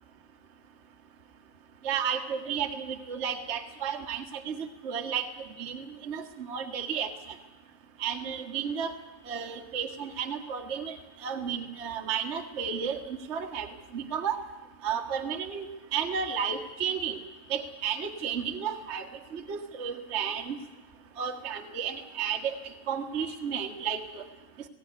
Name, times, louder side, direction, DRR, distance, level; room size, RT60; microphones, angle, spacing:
voice 1, 1.8-7.1 8.0-8.9 9.2-11.0 11.2-14.4 14.8-15.7 15.9-17.2 17.5-20.6 21.2-24.2, right 7 dB, 45° right, 4 dB, 0.9 m, -33 dB
19.0 x 16.5 x 9.4 m, 1.1 s
omnidirectional pair, 3.9 m